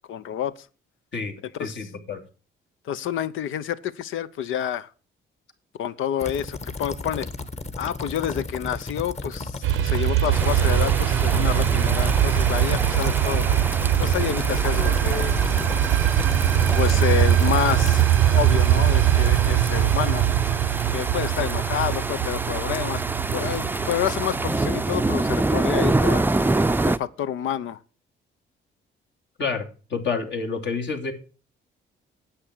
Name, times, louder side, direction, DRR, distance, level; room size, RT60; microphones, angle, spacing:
voice 1, 0.1-0.7 1.5-1.9 2.8-4.9 5.8-7.3 7.8-13.5 14.0-15.4 16.2-16.3 16.7-18.1 18.3-20.2 20.9-23.0 23.3-26.2 26.8-27.8, left 10 dB, 80° left, 0.8 m, -28 dB
voice 2, 1.1-2.2 29.4-29.6 29.9-31.1, left 5 dB, 65° left, 2.8 m, -29 dB
sound 1, 6.2-18.0, left 3 dB, 35° left, 1.6 m, -33 dB
sound 2, 9.6-25.4, right 12 dB, 85° right, 0.7 m, -22 dB
sound 3, 10.3-27.0, right 2 dB, 10° right, 0.5 m, -27 dB
10.0 x 8.2 x 6.1 m
cardioid pair, 90°, 20 cm